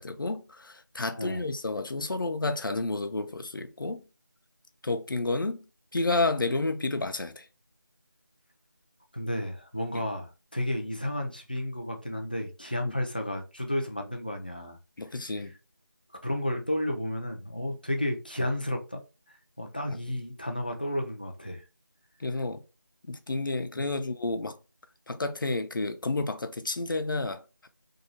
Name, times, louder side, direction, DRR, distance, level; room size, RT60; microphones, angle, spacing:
voice 1, 0.0-4.0 4.8-5.6 5.9-7.5 9.9-10.0 12.8-12.9 15.0-15.5 19.9-20.0 22.2-22.6 23.1-24.6 25.1-27.7, left 2 dB, 80° left, 0.5 m, -30 dB
voice 2, 9.1-14.8 16.2-19.0 19.6-21.6, left 1 dB, 25° left, 0.4 m, -32 dB
2.7 x 2.2 x 2.9 m
figure-of-eight pair, 175°, 11 cm